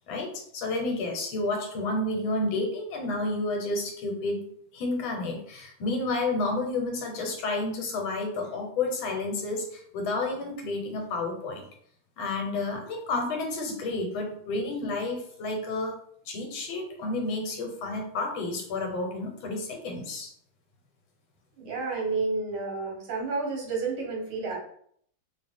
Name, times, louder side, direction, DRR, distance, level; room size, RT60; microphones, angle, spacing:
voice 1, 0.1-4.4 4.7-11.6 12.2-15.9 16.2-20.3, left 2 dB, 75° left, 1 dB, 1.7 m, -30 dB
voice 2, 21.6-24.6, right 3 dB, 80° right, 0 dB, 1.9 m, -30 dB
3.9 x 2.4 x 3.5 m, 0.64 s
omnidirectional pair, 2.3 m